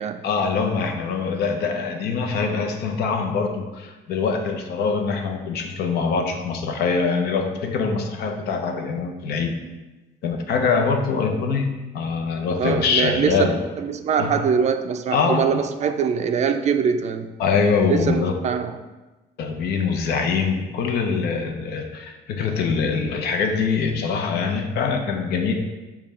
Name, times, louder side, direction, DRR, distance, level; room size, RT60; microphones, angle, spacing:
voice 1, 0.2-9.6 10.2-13.6 14.2-14.4 15.1-15.6 17.4-18.3 19.4-25.5, left 5 dB, 75° left, 4 dB, 0.7 m, -23 dB
voice 2, 12.6-17.3 17.9-18.7, right 7 dB, 40° right, 8 dB, 0.4 m, -23 dB
5.2 x 2.3 x 4.3 m, 1.1 s
cardioid pair, 110°, 17 cm